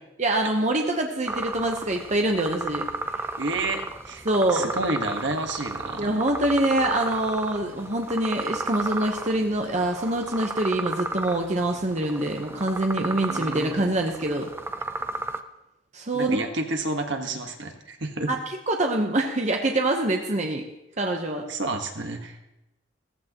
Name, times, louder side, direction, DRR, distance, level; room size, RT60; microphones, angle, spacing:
voice 1, 0.2-2.8 4.2-4.7 6.0-14.5 15.9-16.4 18.3-18.4 18.7-20.7 21.0-21.5, right 1 dB, 40° right, 3 dB, 0.9 m, -25 dB
sound 1, 1.3-15.4, right 2 dB, 10° right, 0.5 m, -33 dB
voice 2, 3.4-4.2 4.5-6.1 13.3-13.8 16.1-18.3 21.5-22.5, right 2 dB, 70° right, 4 dB, 1.4 m, -30 dB
15.5 x 14.5 x 3.0 m, 0.92 s
head